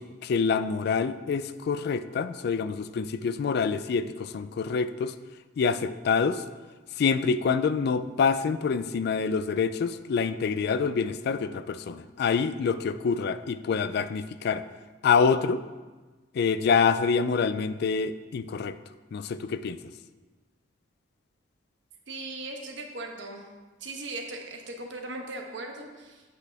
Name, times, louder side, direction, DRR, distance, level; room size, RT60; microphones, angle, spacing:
voice 1, 0.0-5.1 5.6-6.4 7.0-14.6 15.0-15.6 16.3-18.8 19.1-19.8, left 5 dB, 60° left, 13 dB, 0.3 m, -26 dB
voice 2, 22.1-23.5 23.8-26.2, right 2 dB, 70° right, 2 dB, 1.0 m, -38 dB
8.0 x 6.2 x 3.4 m, 1.3 s
head